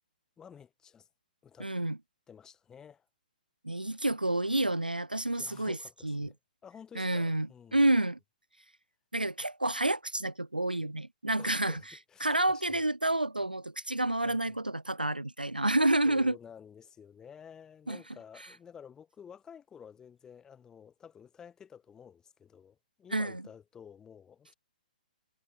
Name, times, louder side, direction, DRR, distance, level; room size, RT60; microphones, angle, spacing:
voice 1, 0.4-1.1 1.4-1.7 2.3-3.1 5.4-6.4 6.6-7.8 11.4-12.8 14.2-14.6 16.1-24.5, left 7 dB, 15° left, 1.1 m, -52 dB
voice 2, 1.6-2.0 3.6-5.8 6.0-6.3 7.0-8.2 9.1-11.8 12.2-16.4 17.9-18.0 23.1-23.4, right 1 dB, 90° right, 0.5 m, -29 dB
figure-of-eight pair, 120°, 5 cm